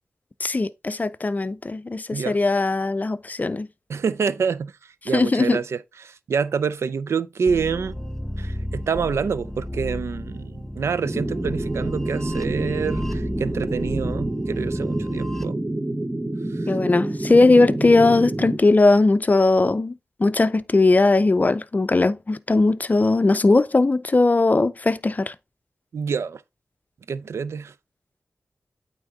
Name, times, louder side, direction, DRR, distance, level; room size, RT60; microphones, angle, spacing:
voice 1, 0.4-3.7 5.1-5.6 16.7-25.4, left 3 dB, 35° left, 0.5 m, -19 dB
voice 2, 3.9-8.0 8.4-15.6 16.5-16.7 25.9-26.4 27.1-27.7, right 6 dB, 80° right, 0.4 m, -27 dB
sound 1, 7.5-15.5, left 1 dB, 5° left, 0.9 m, -33 dB
sound 2, 11.0-18.6, right 1 dB, 20° right, 0.9 m, -28 dB
8.8 x 3.6 x 3.7 m
cardioid pair, 50°, 5 cm